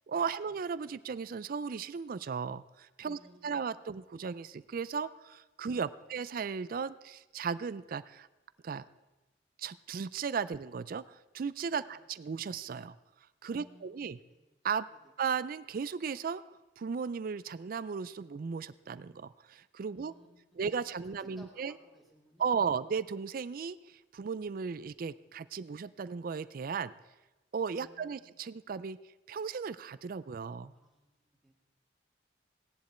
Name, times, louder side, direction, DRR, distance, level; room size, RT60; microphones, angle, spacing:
voice 1, 0.1-3.2 3.4-8.3 8.6-8.8 9.6-13.0 13.4-14.2 14.6-14.9 15.2-20.1 20.6-21.8 22.4-26.9 27.5-29.0 29.3-30.7, right 6 dB, 50° right, 16 dB, 0.4 m, -36 dB
voice 2, 3.0-3.6 6.0-6.1 11.7-12.0 13.5-14.4 19.9-20.3 21.2-22.8 27.7-28.2 30.7-31.5, equal, ahead, -2 dB, 2.4 m, -61 dB
16.5 x 10.5 x 4.3 m, 1.1 s
head